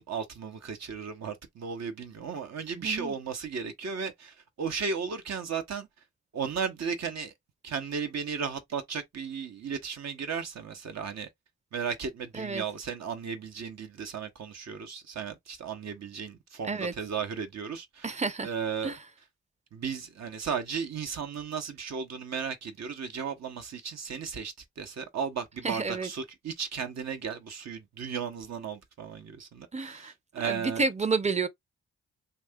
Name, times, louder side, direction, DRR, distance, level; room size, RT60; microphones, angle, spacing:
voice 1, 0.0-5.9 6.3-7.3 7.6-11.3 11.7-18.1 18.4-19.0 19.7-30.9, right 6 dB, 65° right, 0.9 m, -35 dB
voice 2, 2.8-3.1 12.3-12.6 16.7-16.9 18.0-18.5 18.8-19.0 25.6-26.1 29.7-30.1 30.4-31.5, right 4 dB, 25° right, 0.7 m, -30 dB
2.8 x 2.3 x 3.5 m
supercardioid pair, 50°, 29 cm